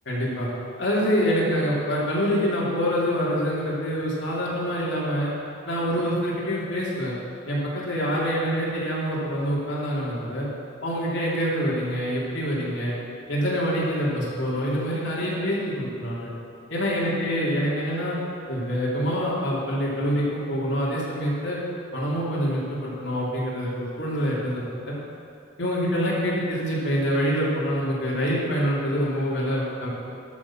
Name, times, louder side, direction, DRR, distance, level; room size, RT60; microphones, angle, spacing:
voice 1, 0.0-0.5 0.8-5.3 5.6-7.1 7.5-10.5 10.8-12.9 13.3-16.3 16.7-18.2 18.5-21.6 21.9-25.0 25.6-29.9, equal, 65° left, -6 dB, 3.1 m, -26 dB
12.0 x 6.5 x 6.1 m, 2.5 s
head